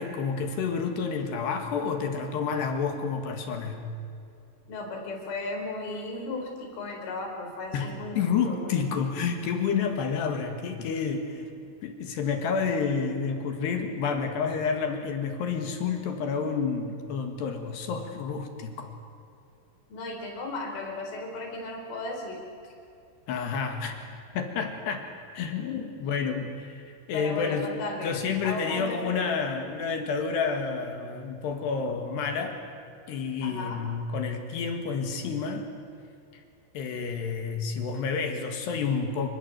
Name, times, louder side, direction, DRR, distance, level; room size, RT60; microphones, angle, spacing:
voice 1, 0.0-3.9 7.7-7.9 8.2-11.5 11.8-18.9 23.3-23.9 24.3-25.1 25.3-27.7 28.0-32.6 33.1-35.7 36.3-36.4 36.7-39.3, left 5 dB, 65° left, 5 dB, 3.7 m, -29 dB
voice 2, 4.7-8.8 19.9-22.7 27.1-29.2 33.4-33.9, left 2 dB, 85° left, 2 dB, 7.0 m, -35 dB
27.5 x 24.5 x 8.0 m, 2.5 s
omnidirectional pair, 5.5 m